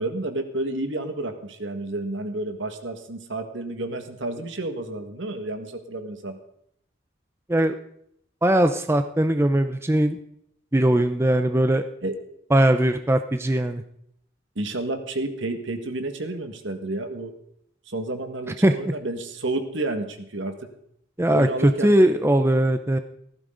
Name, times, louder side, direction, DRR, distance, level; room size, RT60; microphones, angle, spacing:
voice 1, 0.0-6.4 12.0-12.2 14.6-17.3 17.9-20.6 21.3-22.0, right 2 dB, 65° right, 7 dB, 1.8 m, -30 dB
voice 2, 8.4-10.2 10.7-11.8 12.5-13.8 18.6-18.9 21.2-23.0, right 1 dB, 15° right, 8 dB, 0.5 m, -20 dB
17.0 x 14.5 x 3.9 m, 0.72 s
head